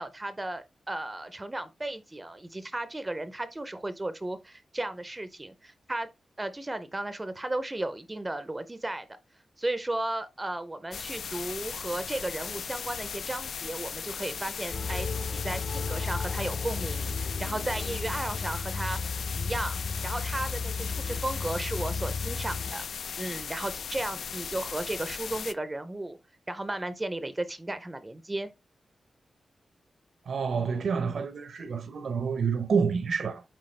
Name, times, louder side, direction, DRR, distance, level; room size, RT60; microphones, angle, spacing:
voice 1, 0.0-6.1 6.4-9.1 9.6-22.9 23.2-26.2 26.5-28.5, right 1 dB, 15° right, 0.5 m, -35 dB
sound 1, 10.9-25.5, left 6 dB, 85° left, 0.4 m, -37 dB
sound 2, 14.7-22.7, left 4 dB, 50° left, 0.8 m, -34 dB
voice 2, 30.3-33.4, right 5 dB, 75° right, 0.8 m, -28 dB
7.6 x 4.6 x 3.2 m
wide cardioid pair, 180°, 0 cm